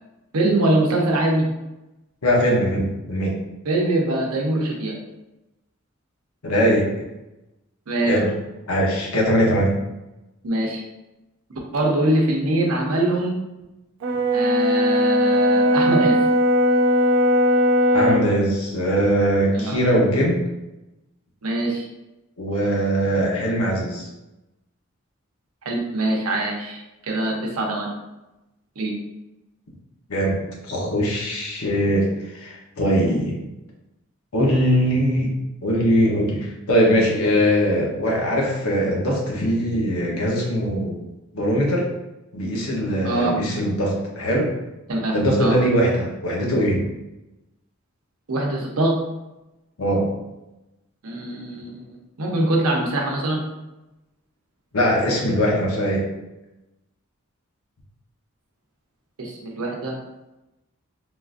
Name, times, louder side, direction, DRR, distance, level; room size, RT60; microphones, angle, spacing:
voice 1, 0.3-1.5 3.7-4.9 7.9-8.1 10.4-10.8 11.5-13.3 14.3-16.2 19.5-19.8 21.4-21.9 25.6-27.9 28.8-28.9 43.0-43.3 44.9-45.1 45.4-45.5 48.3-48.9 51.0-51.8 52.2-53.4 59.2-60.0, right 1 dB, 85° right, 0 dB, 0.7 m, -23 dB
voice 2, 2.2-3.3 6.4-7.1 8.0-8.3 8.7-9.7 17.9-20.4 22.4-24.1 30.1-33.4 34.3-35.3 35.6-41.0 41.3-41.9 42.3-44.5 45.1-46.8 49.8-50.1 54.7-56.1, equal, 80° left, -2 dB, 0.8 m, -21 dB
Brass instrument, 14.0-18.3, equal, 65° right, 0.3 m, -18 dB
3.6 x 2.4 x 2.5 m, 0.97 s
head